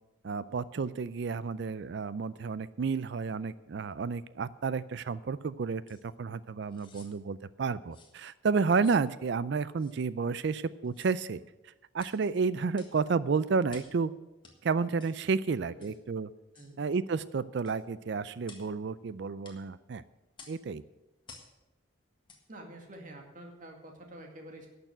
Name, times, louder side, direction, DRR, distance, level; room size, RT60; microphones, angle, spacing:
voice 1, 0.2-11.4 11.9-14.1 14.6-16.3 16.8-20.0 20.5-20.8, right 5 dB, 60° right, 17 dB, 0.4 m, -31 dB
sound 1, 5.9-6.0 6.7-7.1 7.9-8.2 8.8-9.1 9.8-10.0 10.8-11.2 12.0-12.2 12.7-13.0 13.7-14.0 14.4-14.6 15.0-15.2 15.8-16.0 16.5-16.7 17.6-17.8 18.4-18.7 19.4-19.6 20.3-20.6 21.2-21.5 22.2-22.4 22.9-23.0, left 4 dB, 25° left, 1.6 m, -53 dB
voice 2, 22.5-24.7, right 1 dB, 40° right, 2 dB, 2.2 m, -48 dB
11.5 x 6.8 x 9.1 m, 1.0 s
head